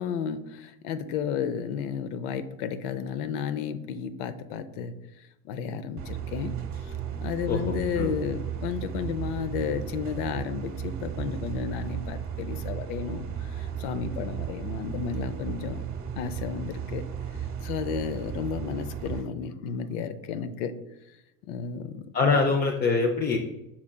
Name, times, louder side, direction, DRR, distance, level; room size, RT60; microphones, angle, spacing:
voice 1, 0.0-4.9 5.4-6.5 6.8-7.0 7.2-15.8 16.2-17.0 17.6-20.7 21.4-22.4, left 7 dB, 75° left, 11 dB, 0.6 m, -32 dB
sound 1, 6.0-19.2, right 8 dB, 30° right, 1.0 m, -35 dB
voice 2, 7.5-8.1 22.1-23.4, left 4 dB, 25° left, 2 dB, 0.3 m, -24 dB
5.9 x 3.6 x 2.2 m, 0.92 s
supercardioid pair, 90°, 44 cm